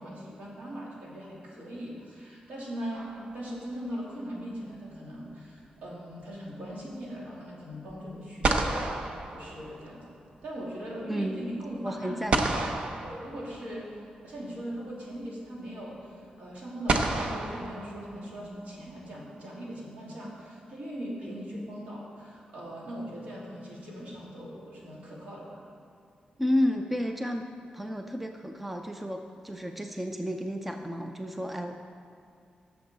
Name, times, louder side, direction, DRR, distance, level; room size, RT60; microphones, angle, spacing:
voice 1, 0.0-3.1 3.3-8.9 9.3-12.4 13.0-25.6, equal, 70° right, -5 dB, 2.8 m, -40 dB
sound 1, 2.9-3.8 7.9-8.0 8.4-10.1 12.3-13.9 15.2-15.3 16.9-18.5, right 2 dB, 50° right, 0.7 m, -31 dB
voice 2, 11.1-11.4 11.8-12.6 26.4-27.5 27.7-31.7, equal, 5° right, 4 dB, 0.4 m, -31 dB
17.0 x 6.9 x 4.0 m, 2.3 s
wide cardioid pair, 180°, 3 cm